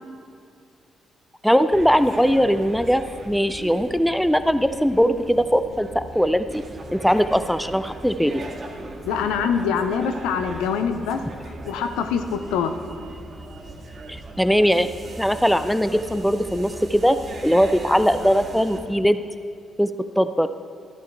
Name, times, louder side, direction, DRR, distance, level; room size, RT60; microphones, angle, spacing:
voice 1, 1.4-6.6 6.9-8.4 14.1-14.9 15.2-19.2 19.8-19.9 20.2-20.5, equal, 5° left, 12 dB, 0.5 m, -20 dB
sound 1, 1.7-18.8, right 2 dB, 40° right, 1.6 m, -38 dB
voice 2, 9.0-11.2 11.7-12.7, left 6 dB, 65° left, 8 dB, 0.6 m, -24 dB
13.0 x 11.5 x 3.4 m, 2.4 s
figure-of-eight pair, 40°, 0 cm